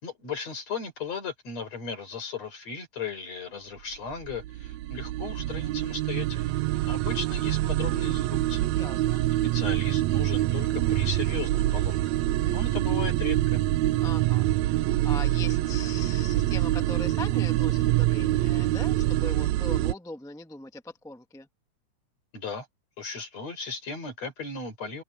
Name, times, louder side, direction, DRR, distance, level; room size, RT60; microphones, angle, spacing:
voice 1, 0.0-6.6 6.9-8.7 9.4-12.0 12.4-13.6 22.3-22.7 23.0-25.0, left 5 dB, 60° left, 6.1 m, -36 dB
sound 1, 4.0-19.9, right 15 dB, 75° right, 1.7 m, -25 dB
voice 2, 8.7-9.2 14.0-14.5 15.0-21.5, left 3 dB, ahead, 1.0 m, -41 dB
omnidirectional pair, 3.5 m